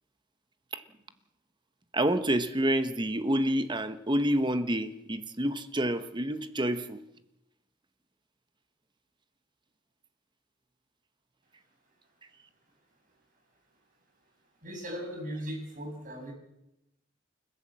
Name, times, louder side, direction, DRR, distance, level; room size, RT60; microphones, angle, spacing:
voice 1, 1.9-7.0, right 1 dB, 25° right, 1.1 m, -28 dB
voice 2, 14.6-16.3, equal, 45° right, 7.2 m, -38 dB
30.0 x 14.5 x 7.7 m
head